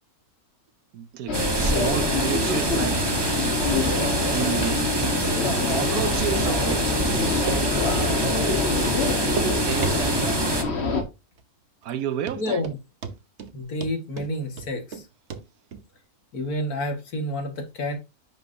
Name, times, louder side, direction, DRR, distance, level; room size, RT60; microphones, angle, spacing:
voice 1, 0.9-3.1 4.1-4.9 5.5-8.0 9.6-10.4 11.8-12.6, right 10 dB, 75° right, 1.2 m, -31 dB
sound 1, 1.3-11.0, left 4 dB, 45° left, 1.6 m, -26 dB
sound 2, 1.3-10.6, right 2 dB, 20° right, 0.9 m, -26 dB
Run, 5.0-5.1 5.5-5.6 6.0-6.1 6.4-6.8 7.1-8.0 8.2-8.4 8.6-8.7 9.0-9.5 9.8-10.3 10.7-11.1 11.4-11.5 11.9-12.0 12.3-12.8 13.0-13.5 13.8-15.0 15.3-15.4 15.7-15.8, right 5 dB, 50° right, 1.2 m, -33 dB
voice 2, 12.4-12.8 13.5-15.1 16.3-18.0, left 1 dB, 75° left, 2.4 m, -29 dB
10.5 x 6.2 x 2.8 m
omnidirectional pair, 1.6 m